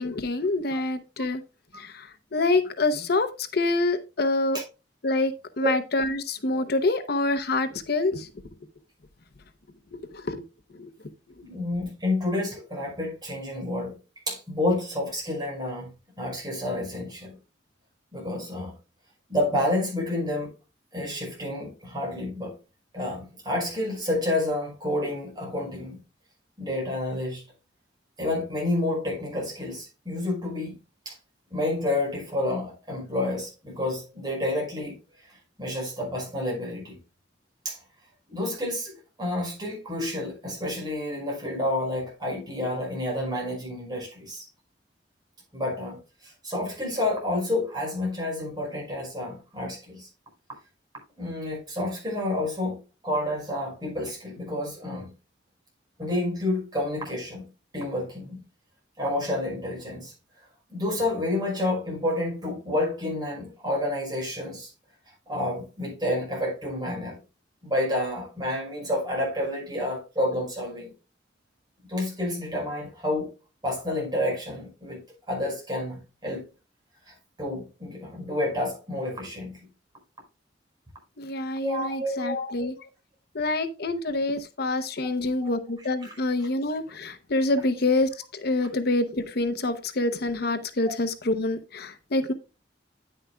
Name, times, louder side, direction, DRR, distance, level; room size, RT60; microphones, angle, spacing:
voice 1, 0.0-1.4 1.8-4.6 5.0-5.3 5.6-8.3 10.1-10.4 10.8-10.9 81.2-82.7 83.3-92.3, left 2 dB, 60° left, 0.8 m, -26 dB
voice 2, 11.4-13.9 14.3-15.9 16.2-17.3 18.1-18.7 19.3-20.5 20.9-22.5 22.9-26.0 26.6-27.4 28.2-30.8 31.1-31.2 31.5-34.9 35.6-37.0 37.6-37.8 38.3-44.5 45.5-46.0 46.4-50.1 51.2-52.8 53.0-55.1 56.0-57.4 57.7-58.4 59.0-60.1 60.7-64.7 65.3-67.2 67.6-70.9 71.9-73.3 73.6-75.0 75.3-76.4 77.4-79.6 81.6-82.4 85.4-85.5 86.0-86.1, left 1 dB, 25° right, 5.6 m, -29 dB
9.7 x 9.5 x 2.3 m
head